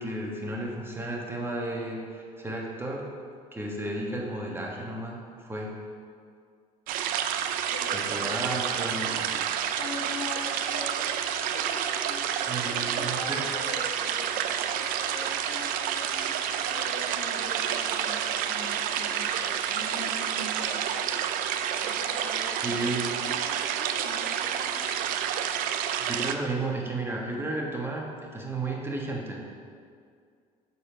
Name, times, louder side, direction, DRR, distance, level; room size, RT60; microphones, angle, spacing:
voice 1, 0.0-3.1 3.5-5.7 7.9-9.3 12.3-13.4 22.6-23.1 26.0-29.4, right 2 dB, 15° right, -2 dB, 1.3 m, -33 dB
sound 1, 6.9-26.3, right 9 dB, 70° right, 0.5 m, -29 dB
voice 2, 7.7-11.1 11.5-12.2 12.6-21.0 21.8-25.1, left 3 dB, 85° left, -3 dB, 1.5 m, -42 dB
6.6 x 4.2 x 5.6 m, 2.2 s
supercardioid pair, 85°, 15 cm